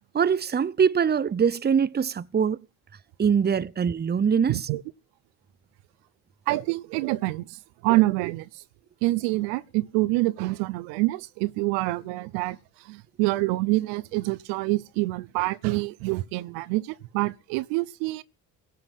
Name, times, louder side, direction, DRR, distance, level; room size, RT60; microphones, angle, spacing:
voice 1, 0.1-2.6 3.2-4.7, right 7 dB, 25° right, 0.7 m, -23 dB
voice 2, 4.5-4.8 6.5-8.5 9.0-12.6 12.8-18.2, right 20 dB, 80° right, 0.9 m, -26 dB
17.5 x 5.8 x 9.1 m
hypercardioid pair, 60°, 42 cm